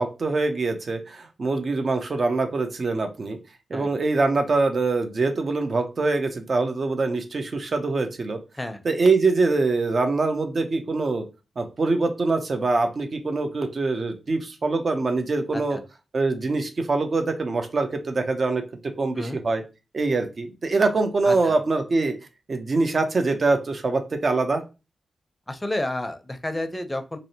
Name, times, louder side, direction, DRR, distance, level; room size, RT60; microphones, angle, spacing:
voice 1, 0.0-3.4 3.7-8.4 8.8-11.3 11.6-15.8 16.1-18.6 19.0-19.6 19.9-22.1 22.5-24.6, right 3 dB, 55° right, 6 dB, 0.5 m, -24 dB
voice 2, 21.2-21.5 25.5-27.2, left 1 dB, 20° left, 9 dB, 0.5 m, -30 dB
2.6 x 2.0 x 2.7 m, 0.29 s
supercardioid pair, 40°, 0 cm